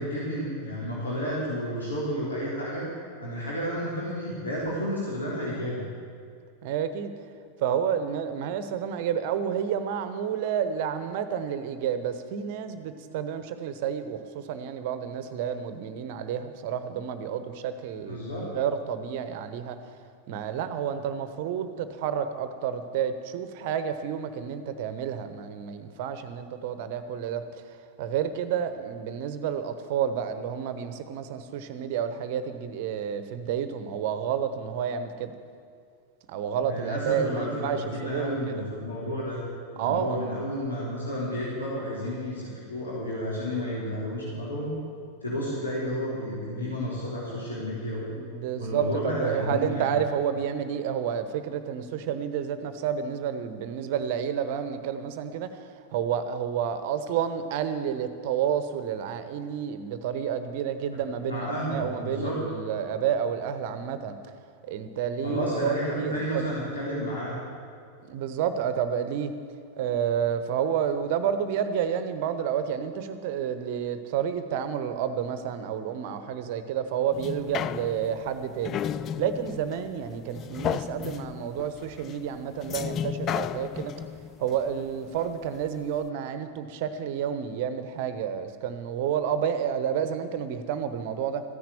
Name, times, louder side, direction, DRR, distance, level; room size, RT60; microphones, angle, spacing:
voice 1, 0.0-2.9 3.2-5.8 18.0-18.4 36.7-39.4 39.7-44.7 45.2-48.1 48.6-50.0 61.2-62.4 65.2-67.4, equal, 75° left, -7 dB, 3.7 m, -31 dB
voice 2, 6.6-7.1 7.6-18.2 18.5-19.8 20.3-35.3 36.3-38.6 39.8-40.2 46.6-46.7 48.1-55.6 55.9-64.1 64.6-66.5 68.0-69.3 69.8-83.9 84.4-91.4, right 8 dB, 50° right, 10 dB, 1.0 m, -30 dB
sound 1, 77.1-85.6 86.1-86.2, left 9 dB, 30° left, 0.3 m, -34 dB
14.5 x 10.5 x 7.8 m, 2.3 s
figure-of-eight pair, 90°, 0 cm